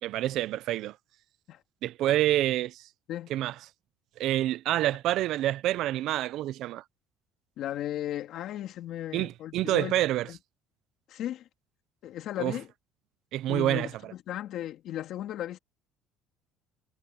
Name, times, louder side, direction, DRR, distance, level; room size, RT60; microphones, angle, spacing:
voice 1, 0.0-1.0 1.8-2.8 3.3-3.5 4.2-6.8 9.1-10.3 12.4-12.5 13.3-13.9, right 14 dB, 60° right, 0.6 m, -27 dB
voice 2, 7.6-9.9 10.3-10.4 11.1-11.5 12.0-12.7 13.5-15.6, left 12 dB, 55° left, 3.3 m, -36 dB
cardioid pair, 150°, 0 cm